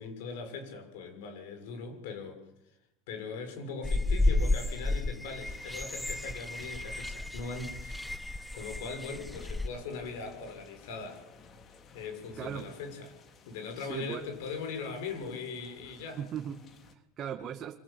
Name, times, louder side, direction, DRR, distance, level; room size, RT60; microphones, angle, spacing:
voice 1, 0.0-2.4 3.1-8.0 8.2-11.2 11.9-13.1 13.4-16.2, left 4 dB, 85° left, 6.8 m, -40 dB
sound 1, 3.8-9.7, left 2 dB, 5° left, 1.1 m, -32 dB
sound 2, 5.5-17.0, left 4 dB, 45° left, 3.2 m, -57 dB
voice 2, 12.4-12.7 13.7-14.3 16.2-17.8, right 8 dB, 45° right, 2.0 m, -39 dB
25.0 x 19.5 x 8.7 m
supercardioid pair, 100°, 0 cm